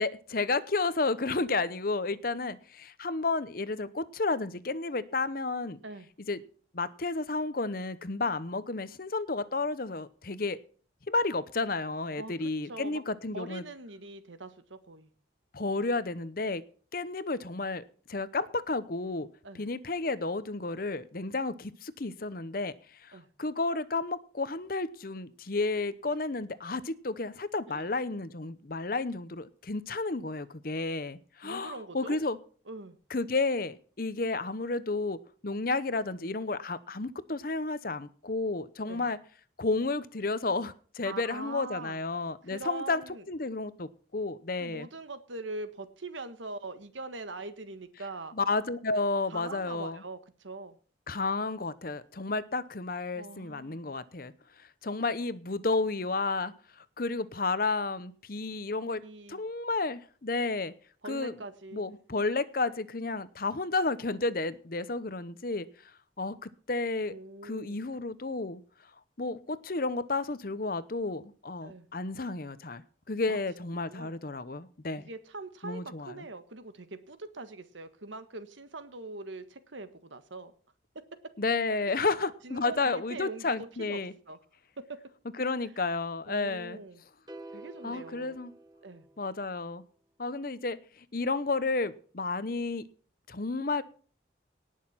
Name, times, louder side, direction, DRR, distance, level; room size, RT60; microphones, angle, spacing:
voice 1, 0.0-5.8 6.3-6.4 6.7-10.6 11.1-13.6 15.5-16.6 16.9-17.8 18.1-19.3 19.5-22.7 23.0-32.4 33.1-35.2 35.4-39.2 39.6-43.0 43.3-44.9 48.3-50.0 51.1-54.3 54.6-59.0 59.3-60.7 61.0-61.3 61.7-65.7 66.2-67.1 67.4-68.6 69.2-72.8 73.1-75.0 75.6-76.1 81.4-84.1 85.4-86.8 87.8-88.5 89.2-89.8 90.2-92.8 93.3-93.8, left 3 dB, 50° left, 0.8 m, -32 dB
voice 2, 12.2-13.0 13.3-15.1 19.4-19.7 23.1-23.3 27.7-27.9 31.4-32.2 32.7-33.0 38.9-39.1 41.0-42.0 42.4-43.2 44.6-48.3 49.3-50.8 53.1-53.8 59.0-59.4 61.0-61.8 67.1-67.8 71.6-71.9 73.3-73.4 73.8-74.1 75.0-80.5 81.9-82.1 82.4-84.0 84.3-84.4 84.8-85.0 86.3-87.0 87.5-88.4 88.8-89.1, right 2 dB, 80° right, 1.5 m, -42 dB
sound 1, 87.3-89.6, right 2 dB, 20° right, 1.3 m, -49 dB
18.5 x 6.6 x 5.8 m
head